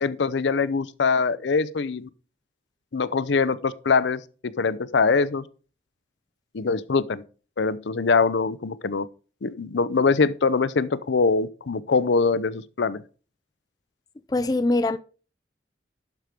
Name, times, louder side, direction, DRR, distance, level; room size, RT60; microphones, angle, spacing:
voice 1, 0.0-2.1 2.9-5.4 6.5-7.2 7.6-9.1 9.4-13.0, left 4 dB, 80° left, 0.6 m, -23 dB
voice 2, 14.3-15.0, left 2 dB, 20° left, 0.4 m, -22 dB
11.5 x 4.7 x 5.1 m
head